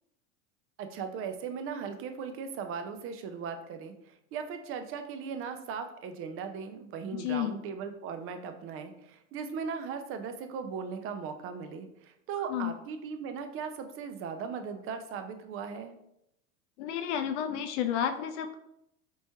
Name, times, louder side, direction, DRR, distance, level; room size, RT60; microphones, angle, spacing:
voice 1, 0.8-16.0, right 6 dB, 35° right, 7 dB, 0.5 m, -38 dB
voice 2, 7.1-7.6 12.5-12.7 16.8-18.5, left 9 dB, 60° left, 8 dB, 0.5 m, -31 dB
4.1 x 3.1 x 3.4 m, 0.80 s
hypercardioid pair, 95°, 40 cm